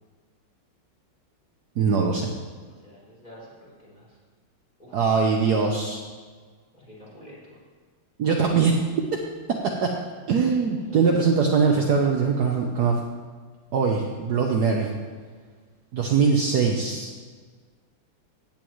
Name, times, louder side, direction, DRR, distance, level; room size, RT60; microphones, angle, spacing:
voice 1, 1.8-2.3 4.9-6.0 8.2-8.7 9.8-9.9 10.3-13.0 13.7-14.9 15.9-17.1, right 5 dB, 60° right, 1 dB, 1.2 m, -22 dB
voice 2, 2.6-4.2 4.8-5.5 6.7-7.6 10.7-11.8, left 1 dB, 20° left, -7 dB, 3.9 m, -48 dB
16.0 x 8.9 x 3.1 m, 1.5 s
omnidirectional pair, 2.2 m